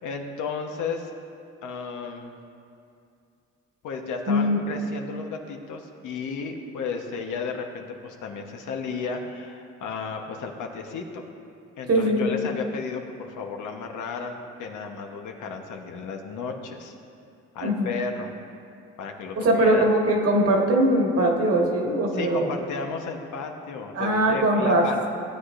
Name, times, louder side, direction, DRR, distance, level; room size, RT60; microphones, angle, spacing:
voice 1, 0.0-1.1 1.6-2.4 3.8-11.3 11.8-16.9 17.5-18.3 19.0-19.9 22.1-25.1, left 5 dB, 80° left, 3 dB, 1.1 m, -33 dB
voice 2, 4.3-4.6 11.9-12.3 17.6-17.9 19.4-22.5 23.9-25.1, right 1 dB, 50° right, 0 dB, 1.7 m, -21 dB
16.0 x 8.1 x 2.5 m, 2.5 s
cardioid pair, 90°, 30 cm